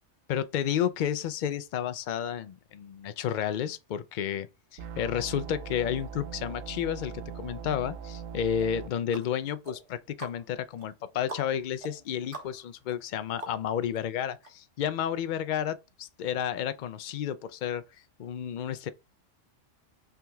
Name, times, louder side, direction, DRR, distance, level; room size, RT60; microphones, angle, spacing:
voice 1, 0.3-17.8 18.2-18.9, left 9 dB, 70° left, 0.4 m, -31 dB
sound 1, 4.8-8.9, right 7 dB, 85° right, 1.1 m, -40 dB
Tick Tock Tongue, 8.6-14.0 14.4-14.5, right 2 dB, 45° right, 1.6 m, -46 dB
5.7 x 3.7 x 2.3 m
omnidirectional pair, 1.3 m